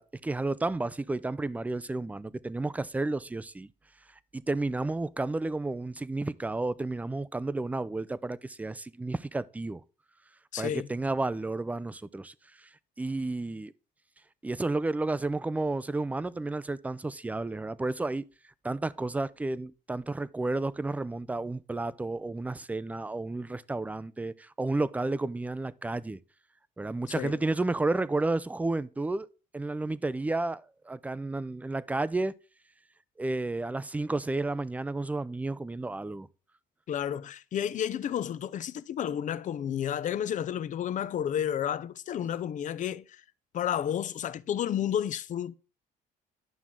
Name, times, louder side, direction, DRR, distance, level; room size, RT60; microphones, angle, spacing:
voice 1, 0.0-3.7 4.3-9.8 10.6-12.3 12.6-12.7 13.0-13.7 14.4-18.2 18.6-26.2 26.8-29.3 29.5-32.3 33.2-36.3, right 2 dB, 10° right, 0.4 m, -31 dB
voice 2, 10.5-10.9 27.1-27.4 36.9-43.2 43.5-45.5, left 9 dB, 50° left, 0.6 m, -31 dB
11.5 x 6.0 x 3.7 m
cardioid pair, 110°, 17 cm